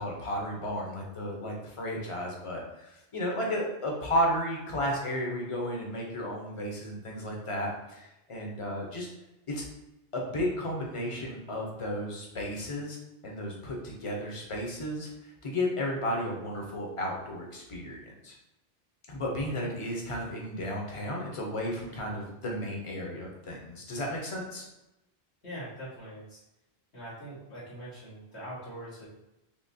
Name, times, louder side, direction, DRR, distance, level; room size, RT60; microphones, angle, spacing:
voice 1, 0.0-9.1 9.5-9.6 10.1-13.0 13.2-18.3 19.1-24.6, equal, 35° left, -1 dB, 0.7 m, -33 dB
voice 2, 19.3-19.7 25.4-26.4 26.9-29.1, equal, 90° left, -11 dB, 1.9 m, -43 dB
3.7 x 2.8 x 2.7 m, 0.93 s
omnidirectional pair, 1.1 m